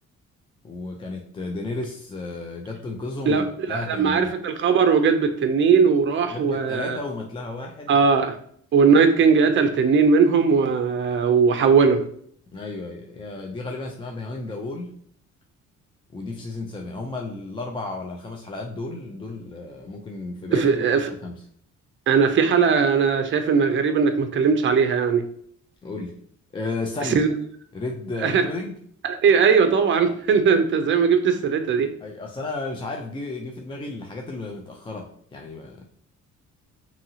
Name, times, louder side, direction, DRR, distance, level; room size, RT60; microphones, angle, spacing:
voice 1, 0.6-4.3 6.3-8.1 12.5-15.0 16.1-20.9 21.2-21.4 25.8-26.2 26.5-27.2 27.7-28.8 32.0-35.8, left 2 dB, 15° left, 1 dB, 0.3 m, -33 dB
voice 2, 3.7-7.0 7.9-8.4 8.7-12.0 20.5-21.1 22.1-25.2 27.2-27.3 28.2-28.4 29.0-31.9, right 5 dB, 40° right, 8 dB, 0.5 m, -19 dB
2.7 x 2.7 x 2.7 m, 0.63 s
cardioid pair, 90°, 30 cm